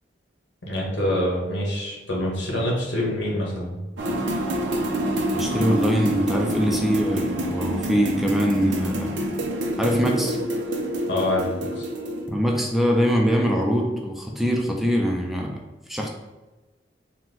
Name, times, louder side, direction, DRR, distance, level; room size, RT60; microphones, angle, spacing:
voice 1, 0.6-3.8 11.1-11.9, left 1 dB, 80° left, -3 dB, 1.4 m, -26 dB
sound 1, 4.0-12.3, equal, 85° right, 0.6 m, -27 dB
voice 2, 5.3-9.2 9.8-10.4 12.3-15.6 15.9-16.1, equal, ahead, 0 dB, 0.4 m, -23 dB
4.3 x 2.2 x 3.9 m, 1.2 s
head